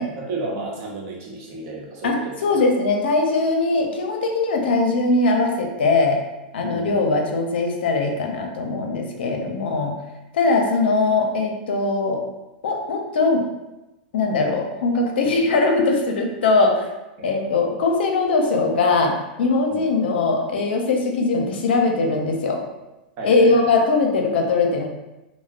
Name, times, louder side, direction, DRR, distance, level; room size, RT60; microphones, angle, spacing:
voice 1, 0.2-2.6 3.8-3.9 6.6-7.1 9.3-9.7 17.2-17.3 19.7-19.8 23.2-23.7, right 2 dB, 50° right, -3 dB, 0.8 m, -33 dB
voice 2, 2.0-6.2 6.5-9.9 10.3-12.2 12.6-13.4 14.1-16.9 17.2-22.6 23.2-24.9, left 3 dB, 80° left, 2 dB, 0.5 m, -20 dB
2.3 x 2.1 x 3.4 m, 0.98 s
hypercardioid pair, 120°, 5 cm